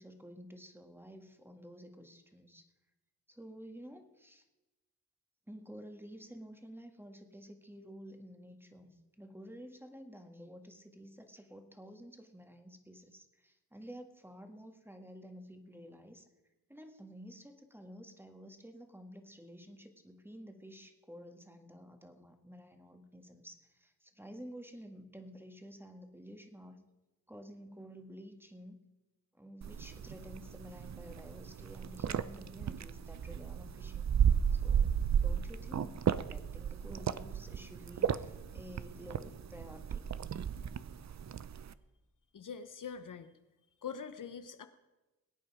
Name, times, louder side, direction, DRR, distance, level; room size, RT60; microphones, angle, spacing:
voice 1, 0.0-2.6 3.3-4.4 5.5-16.3 16.7-26.8 27.3-28.8 29.3-34.1 34.5-40.1, equal, 5° right, 5 dB, 1.8 m, -51 dB
sound 1, 29.6-41.7, right 8 dB, 50° right, 0.6 m, -34 dB
voice 2, 42.3-43.4 43.8-44.7, left 6 dB, 60° left, 10 dB, 0.9 m, -43 dB
21.5 x 8.8 x 4.9 m, 1.1 s
cardioid pair, 70°, 35 cm